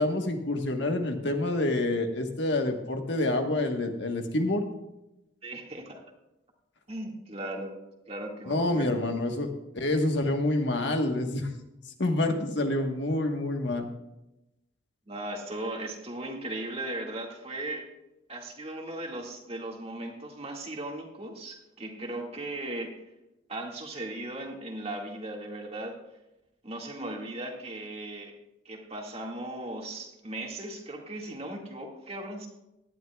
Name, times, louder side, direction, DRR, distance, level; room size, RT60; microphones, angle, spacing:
voice 1, 0.0-4.6 8.5-11.5 12.0-13.8, left 2 dB, 65° left, 4 dB, 1.4 m, -27 dB
voice 2, 5.4-6.0 6.9-7.7 8.1-9.0 15.1-17.8 18.3-22.9 23.5-26.0 26.6-28.3 28.7-32.5, right 1 dB, 35° right, 0 dB, 2.0 m, -37 dB
18.0 x 11.5 x 2.4 m, 0.93 s
head